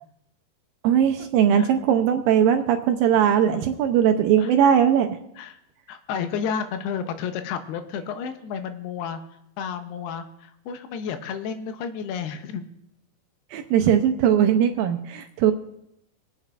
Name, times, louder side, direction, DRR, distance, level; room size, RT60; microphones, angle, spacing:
voice 1, 0.8-5.2 13.5-15.5, right 9 dB, 80° right, 6 dB, 2.1 m, -19 dB
voice 2, 5.9-9.2 9.6-12.7, left 7 dB, 90° left, 8 dB, 2.8 m, -31 dB
25.5 x 8.8 x 2.4 m, 0.81 s
omnidirectional pair, 4.6 m